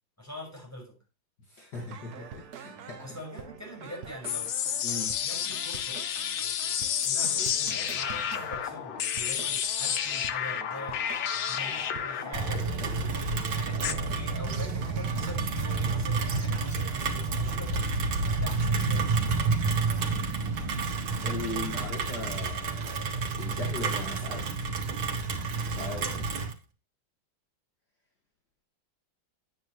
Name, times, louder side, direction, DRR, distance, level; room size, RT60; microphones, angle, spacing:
voice 1, 0.2-1.0 3.0-4.5 5.2-6.0 7.0-11.1 11.5-12.7 13.0-19.2 25.9-26.4, equal, 5° left, 5.4 m, -44 dB
voice 2, 1.5-3.2 4.8-5.1 21.2-24.5 25.7-26.1, left 3 dB, 55° left, 2.4 m, -39 dB
sound 1, 1.7-16.1, right 8 dB, 60° right, 1.2 m, -45 dB
sound 2, 4.2-13.9, left 9 dB, 90° left, 1.7 m, -31 dB
Rain, 12.3-26.5, right 4 dB, 85° right, 2.4 m, -29 dB
9.5 x 8.7 x 3.0 m
omnidirectional pair, 2.2 m